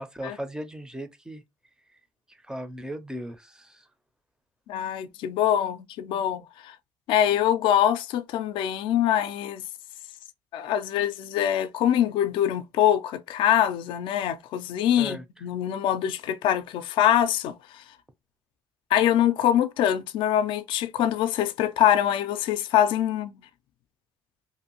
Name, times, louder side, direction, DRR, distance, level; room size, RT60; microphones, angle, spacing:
voice 1, 0.0-1.4 2.3-3.9 15.0-15.2, right 1 dB, 10° right, 0.4 m, -37 dB
voice 2, 4.7-6.8 7.1-9.6 10.5-17.8 18.9-23.3, left 10 dB, 70° left, 0.3 m, -24 dB
2.6 x 2.5 x 2.8 m
cardioid pair, 110°, 9 cm